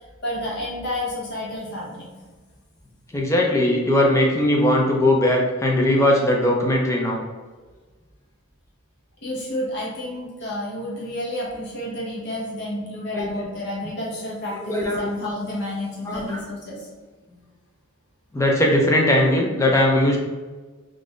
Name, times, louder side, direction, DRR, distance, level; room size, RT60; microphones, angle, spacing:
voice 1, 0.2-2.3 9.2-16.9, left 1 dB, 55° left, -4 dB, 0.9 m, -30 dB
voice 2, 3.1-7.2 13.1-13.3 14.6-15.1 16.1-16.4 18.3-20.2, left 1 dB, 15° left, -1 dB, 0.4 m, -19 dB
2.5 x 2.3 x 3.4 m, 1.3 s
head